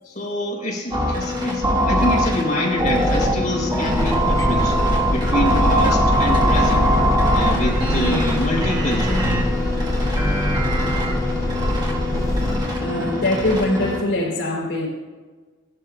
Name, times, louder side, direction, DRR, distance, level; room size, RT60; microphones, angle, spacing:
voice 1, 0.0-4.8 5.1-6.9 7.3-9.5, left 1 dB, 40° left, -4 dB, 4.2 m, -26 dB
sound 1, 0.9-14.0, equal, 25° right, 1.6 m, -22 dB
sound 2, 3.8-12.6, left 1 dB, 15° left, 0.8 m, -24 dB
voice 2, 12.5-14.9, left 1 dB, 70° left, -7 dB, 3.6 m, -23 dB
17.0 x 12.0 x 2.4 m, 1.3 s
head